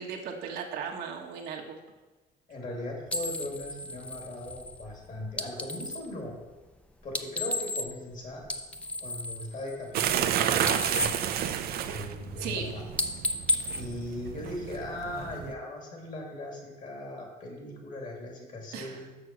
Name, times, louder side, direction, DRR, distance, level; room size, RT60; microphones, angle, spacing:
voice 1, 0.0-1.8 12.4-12.6 18.7-19.1, right 6 dB, 85° right, 1 dB, 1.4 m, -36 dB
voice 2, 2.5-6.3 7.0-8.4 8.7-11.2 11.8-12.8 13.7-19.2, left 1 dB, 50° left, 0 dB, 2.7 m, -39 dB
sound 1, 3.1-6.1 7.0-8.1 8.4-10.3 10.5-12.1 12.5-12.7 12.9-14.8, left 1 dB, 5° left, 0.6 m, -34 dB
sound 2, 9.9-15.5, right 10 dB, 65° right, 0.6 m, -31 dB
6.4 x 6.3 x 6.2 m, 1.2 s
cardioid pair, 110°, 17 cm